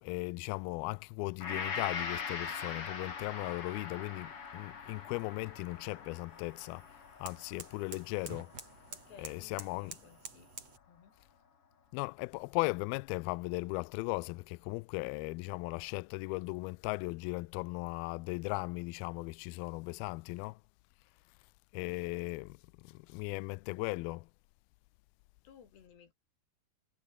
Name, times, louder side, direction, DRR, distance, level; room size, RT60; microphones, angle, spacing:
voice 1, 0.0-8.5 9.2-10.0 11.9-20.6 21.7-24.3, left 25 dB, 90° left, 2.1 m, -37 dB
Gong, 1.4-9.7 10.2-10.3, left 6 dB, 35° left, 3.2 m, -42 dB
sound 1, 4.0-10.8, right 5 dB, 40° right, 4.5 m, -51 dB
voice 2, 8.9-10.5 10.9-11.1 25.4-26.1, left 8 dB, 75° left, 5.7 m, -58 dB
omnidirectional pair, 4.9 m